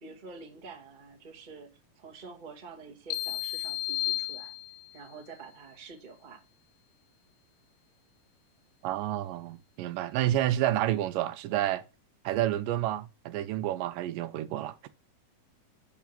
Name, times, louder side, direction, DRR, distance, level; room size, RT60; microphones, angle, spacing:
voice 1, 0.0-4.5 4.9-6.4, right 4 dB, 25° right, 1.1 m, -47 dB
sound 1, 3.1-5.0, left 16 dB, 80° left, 2.3 m, -33 dB
voice 2, 8.8-11.8 12.3-14.8, right 13 dB, 80° right, 2.2 m, -29 dB
7.2 x 5.7 x 5.8 m
omnidirectional pair, 3.9 m